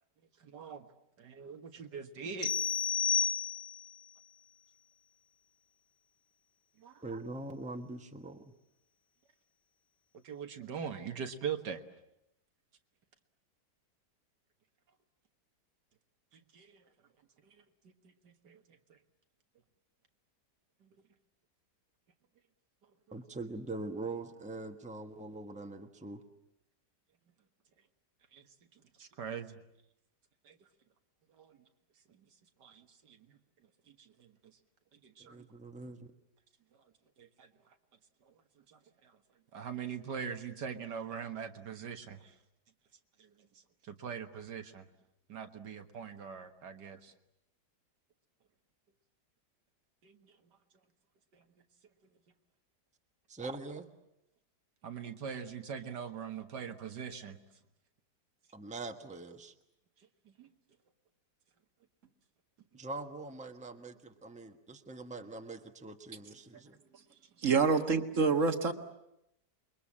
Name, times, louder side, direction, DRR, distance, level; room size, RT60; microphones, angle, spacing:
voice 1, 0.4-0.9 1.2-2.5 6.8-7.0 10.2-11.8 16.3-16.8 17.4-17.6 17.8-17.9 18.2-18.6 18.9-19.0 20.8-20.9 28.3-28.5 28.7-29.6 30.4-30.6 31.3-31.6 32.1-32.3 32.6-33.4 33.9-34.6 34.9-35.5 37.2-37.5 38.2-38.3 38.7-39.2 39.5-42.4 43.2-43.5 43.9-44.9 45.3-47.1 50.0-50.3 51.3-51.4 54.8-57.4 60.4-60.5, right 7 dB, 80° right, 6 dB, 2.1 m, -42 dB
sound 1, 2.4-4.0, left 6 dB, 40° left, 2.1 m, -31 dB
voice 2, 7.0-8.4 23.1-26.2 35.3-36.1 53.3-53.9 58.5-59.5 62.7-66.8, right 2 dB, 5° right, 5 dB, 1.2 m, -43 dB
voice 3, 67.4-68.7, right 4 dB, 50° right, 7 dB, 1.8 m, -27 dB
28.0 x 22.5 x 8.7 m, 0.83 s
omnidirectional pair, 1.8 m